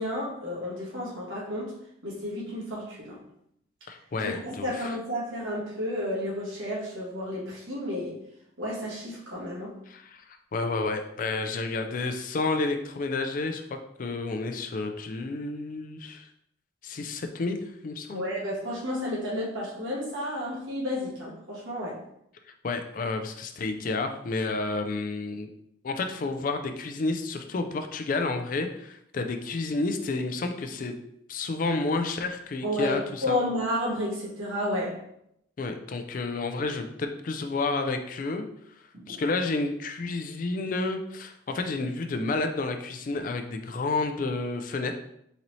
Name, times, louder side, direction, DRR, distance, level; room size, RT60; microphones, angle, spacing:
voice 1, 0.0-1.7 2.0-3.2 4.2-8.2 8.6-9.7 18.1-22.0 32.6-35.0 38.9-39.2, left 1 dB, 85° right, -5 dB, 1.4 m, -31 dB
voice 2, 3.9-5.0 9.9-10.2 10.5-16.3 16.8-18.3 22.6-25.5 25.8-31.0 31.3-33.4 35.6-38.5 39.1-44.9, left 3 dB, 45° left, 6 dB, 0.3 m, -30 dB
4.0 x 2.7 x 3.0 m, 0.75 s
head